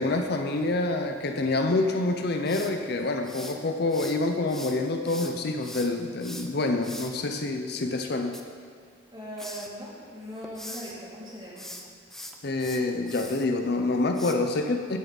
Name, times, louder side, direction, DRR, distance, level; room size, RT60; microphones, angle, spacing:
voice 1, 0.0-8.4 12.4-15.0, left 2 dB, 55° left, 5 dB, 0.6 m, -27 dB
sound 1, 2.5-4.2 4.5-7.1 8.1-9.1 9.4-9.7 10.2-10.9 11.5-13.5 14.2-14.4, left 1 dB, ahead, 0.5 m, -42 dB
voice 2, 9.1-11.6, equal, 25° right, -7 dB, 2.7 m, -40 dB
15.5 x 6.9 x 4.0 m, 2.2 s
head